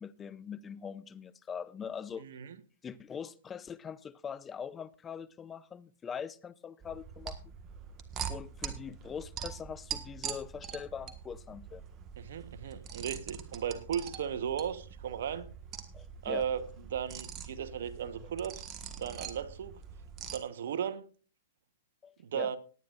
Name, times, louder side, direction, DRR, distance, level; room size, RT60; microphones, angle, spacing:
voice 1, 0.0-2.2 2.8-7.4 8.3-11.8 15.9-16.4 22.0-22.5, left 7 dB, 20° left, 0.6 m, -42 dB
voice 2, 2.2-2.6 12.2-15.5 16.2-16.6 16.9-19.8 20.3-21.1 22.2-22.6, right 8 dB, 70° right, 1.2 m, -36 dB
sound 1, 6.8-20.4, right 8 dB, 30° right, 1.5 m, -44 dB
19.0 x 9.7 x 2.5 m
hypercardioid pair, 125°, 0 cm